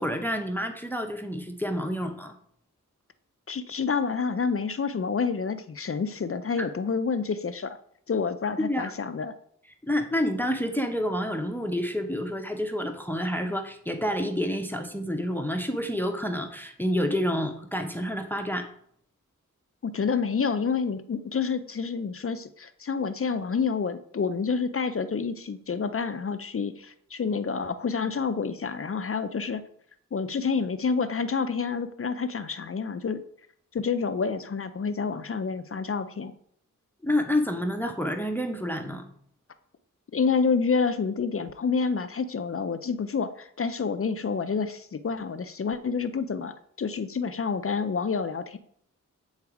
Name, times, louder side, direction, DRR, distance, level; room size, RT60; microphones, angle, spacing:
voice 1, 0.0-2.4 8.6-8.9 9.8-18.7 37.0-39.1, equal, 5° left, 5 dB, 0.7 m, -28 dB
voice 2, 3.5-7.8 8.1-9.4 19.8-29.6 30.1-33.2 33.7-36.3 40.1-48.6, left 5 dB, 45° left, 10 dB, 0.5 m, -28 dB
8.5 x 4.0 x 4.7 m, 0.65 s
wide cardioid pair, 105°, 32 cm